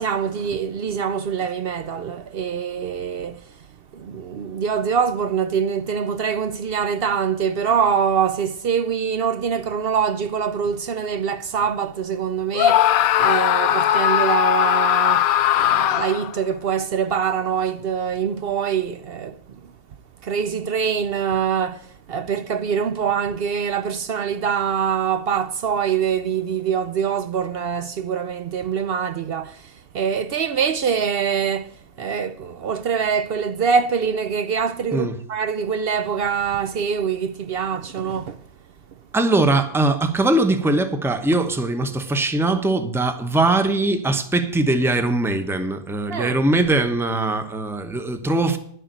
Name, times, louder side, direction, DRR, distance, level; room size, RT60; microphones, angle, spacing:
voice 1, 0.0-3.4 3.9-15.3 15.6-19.4 20.2-21.8 22.1-31.7 32.0-38.4 46.1-46.4, right 7 dB, 65° right, 0.6 m, -24 dB
Screaming, 12.5-16.3, left 11 dB, 75° left, 1.1 m, -18 dB
voice 2, 39.1-48.6, right 2 dB, ahead, 0.7 m, -21 dB
11.0 x 6.7 x 9.0 m
omnidirectional pair, 1.6 m